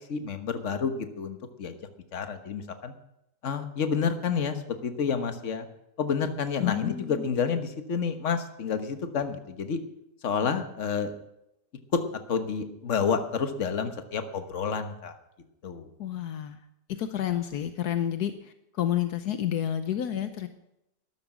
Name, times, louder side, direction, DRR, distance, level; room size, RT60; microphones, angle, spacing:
voice 1, 0.1-1.8 2.1-2.9 3.4-5.7 6.0-9.8 10.2-11.1 11.9-12.0 12.3-15.2 15.6-15.9, left 6 dB, 50° left, 8 dB, 1.5 m, -29 dB
voice 2, 6.6-7.2 16.0-16.6 16.9-20.5, left 10 dB, 75° left, 9 dB, 1.3 m, -30 dB
13.0 x 12.0 x 6.1 m, 0.84 s
omnidirectional pair, 1.7 m